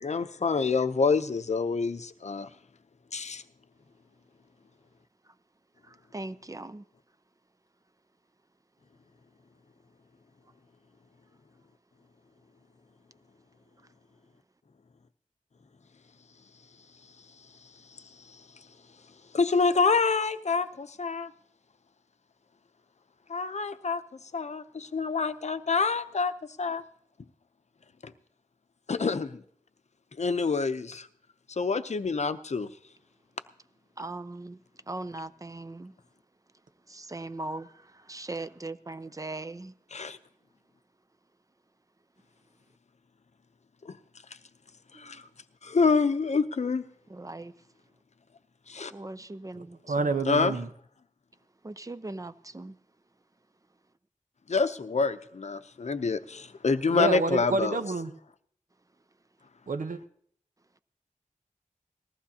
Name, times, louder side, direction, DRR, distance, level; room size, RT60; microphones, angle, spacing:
voice 1, 0.0-2.5 3.1-3.4 19.3-21.3 23.3-24.0 24.3-26.3 26.6-26.8 28.9-29.3 30.2-31.0 31.6-32.7 39.9-40.2 45.7-46.8 48.7-48.9 50.3-50.6 54.5-57.8, left 4 dB, 55° left, 0.6 m, -27 dB
voice 2, 5.8-6.8 34.0-34.6 34.9-35.9 36.9-39.7 44.9-45.2 47.1-47.5 48.9-50.1 51.6-52.8, right 2 dB, 25° right, 0.5 m, -39 dB
voice 3, 49.5-50.7 56.9-58.1 59.7-60.0, right 3 dB, 80° right, 0.8 m, -29 dB
19.5 x 14.5 x 2.8 m
wide cardioid pair, 65°, 13 cm